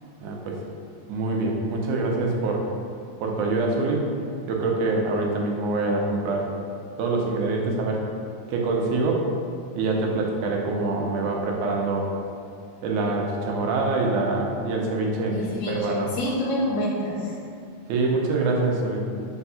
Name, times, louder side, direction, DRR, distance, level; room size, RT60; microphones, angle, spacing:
voice 1, 0.2-0.6 1.1-2.7 3.2-4.1 4.5-6.5 7.0-8.1 8.5-9.3 9.8-12.1 12.8-15.4 15.7-16.1 17.9-19.1, right 3 dB, 85° right, 0 dB, 2.2 m, -25 dB
voice 2, 15.3-17.4, left 1 dB, 70° left, -4 dB, 2.4 m, -27 dB
5.0 x 3.5 x 5.5 m, 2.6 s
omnidirectional pair, 3.3 m